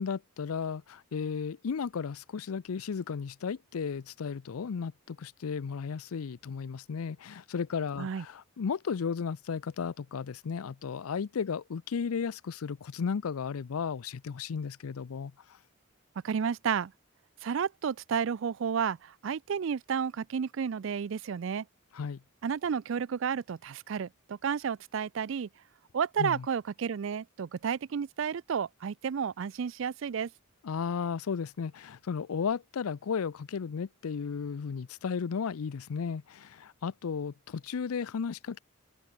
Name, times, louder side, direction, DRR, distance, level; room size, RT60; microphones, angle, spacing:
voice 1, 0.0-15.6 21.9-22.2 26.2-26.5 30.6-38.6, left 6 dB, 85° left, 0.5 m, -34 dB
voice 2, 16.2-16.9 17.4-21.7 22.4-25.5 25.9-30.3, right 7 dB, 60° right, 0.4 m, -31 dB
head